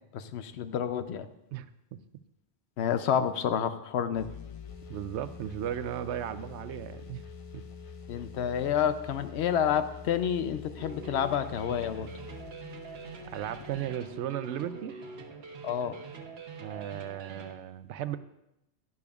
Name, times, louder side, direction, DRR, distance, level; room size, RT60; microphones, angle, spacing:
voice 1, 0.1-1.3 2.8-4.3 8.1-12.1 15.6-16.0, left 8 dB, 75° left, 11 dB, 0.9 m, -29 dB
voice 2, 1.5-2.0 4.9-7.2 7.5-7.6 13.3-15.0 16.6-18.2, right 11 dB, 90° right, 13 dB, 0.9 m, -36 dB
sound 1, 4.1-13.9, left 5 dB, 40° left, 0.5 m, -46 dB
sound 2, 10.8-17.5, right 4 dB, 70° right, 1.1 m, -45 dB
12.0 x 11.0 x 2.4 m, 0.86 s
omnidirectional pair, 1.1 m